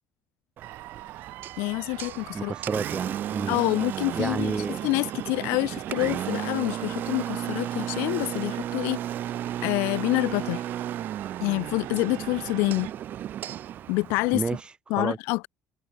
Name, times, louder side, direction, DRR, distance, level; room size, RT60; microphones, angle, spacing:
Engine, 0.6-14.6, right 11 dB, 55° right, 4.0 m, -34 dB
sound 1, 0.6-12.9, right 22 dB, 85° right, 3.6 m, -43 dB
voice 1, 1.6-2.5 3.5-9.0 9.6-10.6 11.4-12.9 13.9-14.4 14.9-15.5, left 26 dB, 90° left, 1.7 m, -27 dB
voice 2, 2.3-3.6 4.1-4.8 14.3-15.2, right 4 dB, 25° right, 2.2 m, -30 dB
cardioid pair, 105°, 4 cm